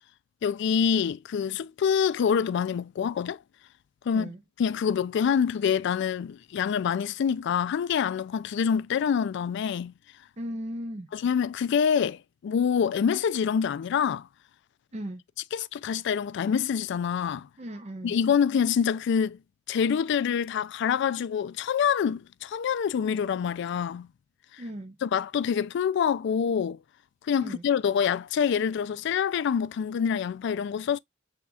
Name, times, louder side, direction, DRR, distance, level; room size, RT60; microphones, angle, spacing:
voice 1, 0.4-3.4 4.1-4.3 4.6-9.9 11.1-14.3 15.5-17.5 18.0-19.4 19.7-24.1 25.0-26.8 27.3-31.0, left 7 dB, 60° left, 0.3 m, -26 dB
voice 2, 4.1-4.4 10.4-11.1 14.9-15.2 17.6-18.2 24.6-25.0 27.4-27.6, equal, 35° right, 0.6 m, -37 dB
5.5 x 3.5 x 2.2 m
head